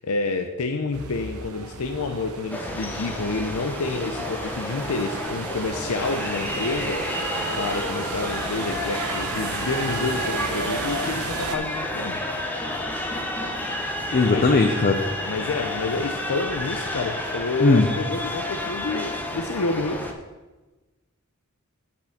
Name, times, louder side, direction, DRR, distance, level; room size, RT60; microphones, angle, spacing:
voice 1, 0.0-7.1 7.5-12.2 12.8-13.0 14.0-14.5 15.3-20.0, left 3 dB, 75° left, 6 dB, 0.6 m, -29 dB
sound 1, 0.9-11.6, right 4 dB, 75° right, 0.8 m, -34 dB
sound 2, 2.5-20.1, left 1 dB, 10° left, 0.9 m, -30 dB
voice 2, 14.1-15.0 17.6-17.9, left 3 dB, 40° left, 5 dB, 0.6 m, -18 dB
8.7 x 6.2 x 5.8 m, 1.2 s
head